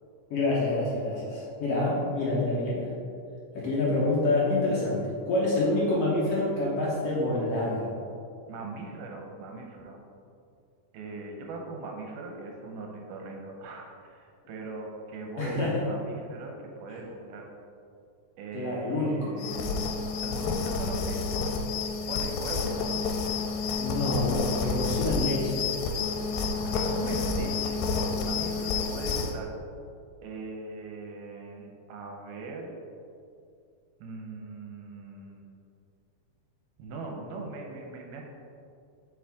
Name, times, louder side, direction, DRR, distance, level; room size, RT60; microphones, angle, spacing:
voice 1, 0.3-2.9 3.5-7.9 15.4-15.8 16.9-17.0 18.5-19.3 23.8-25.6, left 2 dB, 70° left, -6 dB, 1.5 m, -27 dB
voice 2, 8.5-10.0 10.9-16.5 16.8-17.4 18.4-19.8 20.2-21.4 22.1-23.0 26.6-27.8 28.2-29.5 30.2-32.7 34.0-35.5 36.8-38.2, right 3 dB, 75° right, 1 dB, 2.1 m, -40 dB
sound 1, 19.4-29.3, left 4 dB, 90° left, 2.3 m, -29 dB
7.5 x 4.7 x 3.5 m, 2.4 s
omnidirectional pair, 4.0 m